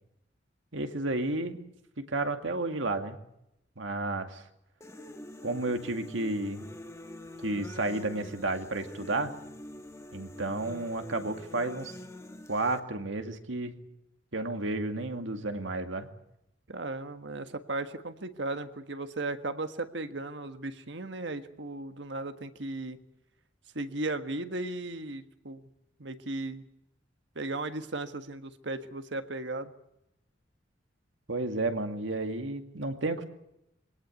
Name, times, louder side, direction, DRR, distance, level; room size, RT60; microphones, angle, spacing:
voice 1, 0.7-1.6 2.0-3.2 3.8-4.4 5.4-6.7 7.4-9.3 10.1-11.9 12.5-13.7 14.3-16.1 31.3-33.2, right 2 dB, 80° right, 6 dB, 2.2 m, -32 dB
sound 1, 4.8-12.8, left 1 dB, 15° left, 1.5 m, -45 dB
voice 2, 16.7-23.0 23.7-25.6 26.0-26.6 27.3-29.7, right 2 dB, 65° right, 8 dB, 1.5 m, -36 dB
23.5 x 18.0 x 9.6 m, 0.84 s
head